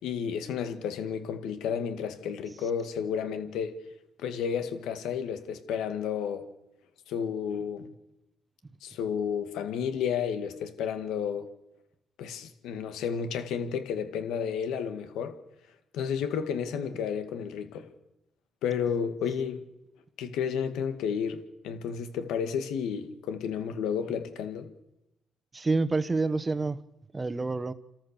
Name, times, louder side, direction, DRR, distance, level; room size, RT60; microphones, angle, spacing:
voice 1, 0.0-3.8 4.2-6.5 7.1-7.9 8.8-11.5 12.2-15.4 15.9-17.9 18.6-19.7 20.2-24.7, left 7 dB, 90° left, 1.9 m, -32 dB
voice 2, 25.5-26.8 27.1-27.7, right 3 dB, 25° right, 1.2 m, -27 dB
28.5 x 14.0 x 6.7 m
cardioid pair, 90°, 0 cm